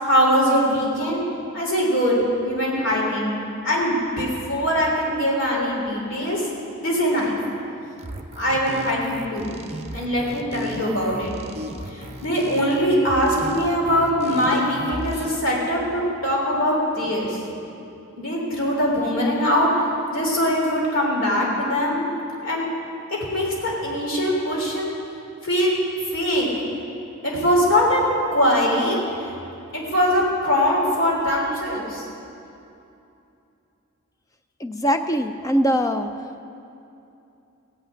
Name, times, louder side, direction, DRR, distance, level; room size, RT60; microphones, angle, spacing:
voice 1, 0.0-1.2 1.5-3.3 3.6-6.5 6.8-7.4 8.4-9.5 9.9-11.3 11.9-17.4 18.2-19.7 20.1-22.1 22.4-22.7 23.1-24.9 25.4-25.8 26.1-26.5 27.2-29.3 29.7-32.0, equal, 60° left, -3 dB, 3.3 m, -22 dB
sound 1, 8.0-15.4, right 1 dB, 30° right, 0.8 m, -36 dB
voice 2, 34.6-36.1, equal, 15° left, 7 dB, 0.3 m, -22 dB
16.5 x 5.8 x 8.6 m, 2.7 s
head